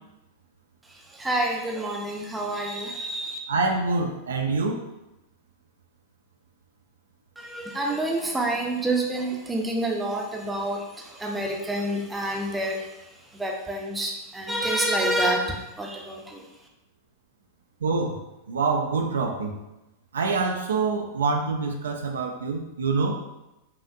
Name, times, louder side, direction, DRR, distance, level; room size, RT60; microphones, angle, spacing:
voice 1, 0.9-3.4 7.4-13.0 13.3-16.4, right 1 dB, 5° right, 0 dB, 0.7 m, -28 dB
voice 2, 3.5-4.8 17.8-18.2 18.5-19.6 20.1-23.1, right 4 dB, 70° right, 2 dB, 0.4 m, -25 dB
5.5 x 2.5 x 2.5 m, 0.97 s
figure-of-eight pair, 90°, 0 cm